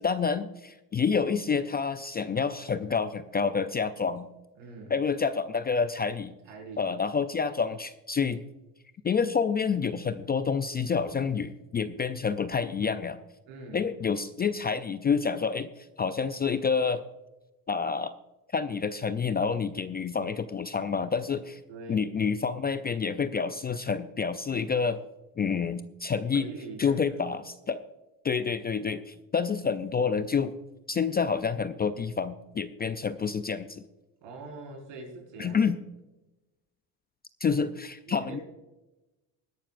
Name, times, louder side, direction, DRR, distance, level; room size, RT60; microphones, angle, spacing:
voice 1, 0.0-4.3 4.9-6.3 6.8-8.4 9.0-13.2 13.7-15.7 16.0-17.0 17.7-18.1 18.5-21.6 21.9-25.0 25.4-26.5 26.8-27.8 28.2-30.5 30.9-33.8 35.4-35.8 37.4-38.4, left 5 dB, 20° left, 11 dB, 0.4 m, -28 dB
voice 2, 4.5-5.0 6.4-6.9 13.4-13.9 21.7-22.1 26.3-27.2 34.2-35.7 38.1-38.4, right 3 dB, 75° right, 2 dB, 4.9 m, -43 dB
20.0 x 11.5 x 2.5 m, 1.0 s
supercardioid pair, 105°, 46 cm